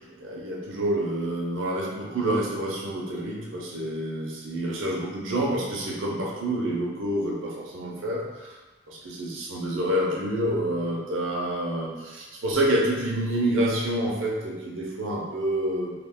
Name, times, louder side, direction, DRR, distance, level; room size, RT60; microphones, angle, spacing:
voice 1, 0.0-8.6 8.9-15.9, right 1 dB, 75° right, -3 dB, 0.6 m, -28 dB
2.4 x 2.3 x 3.5 m, 1.2 s
head